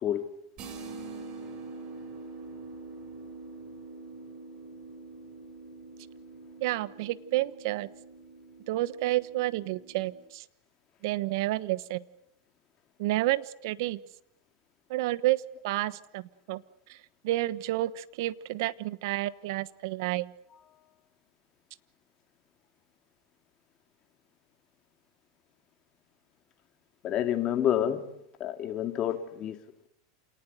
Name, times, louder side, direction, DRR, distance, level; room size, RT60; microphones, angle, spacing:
sound 1, 0.6-10.2, right 3 dB, 40° right, 6.2 m, -45 dB
voice 1, 6.6-7.9 8.7-10.4 11.0-12.0 13.0-14.0 14.9-16.6 16.9-17.0 17.2-20.3, right 17 dB, 65° right, 16 dB, 1.2 m, -30 dB
voice 2, 27.0-28.0 28.4-29.6, left 10 dB, 35° left, 7 dB, 2.4 m, -28 dB
27.5 x 19.0 x 8.0 m, 0.78 s
supercardioid pair, 120°, 2 cm